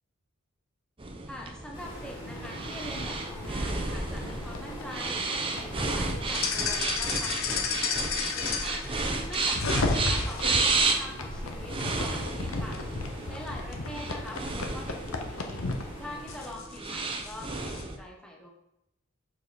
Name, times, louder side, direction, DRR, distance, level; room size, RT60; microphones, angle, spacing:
sound 1, 1.0-18.0, right 3 dB, 25° right, 0.7 m, -33 dB
voice 1, 1.3-5.3 5.6-8.8 9.3-12.8 13.3-15.6 16.0-18.5, left 1 dB, 5° left, -1 dB, 1.0 m, -44 dB
Waves surf, 1.7-16.5, equal, 25° left, 3.0 m, -43 dB
sound 2, 2.3-10.6 11.2-15.8 16.3-17.8, left 4 dB, 75° left, 1.0 m, -33 dB
6.9 x 5.4 x 4.2 m, 0.86 s
head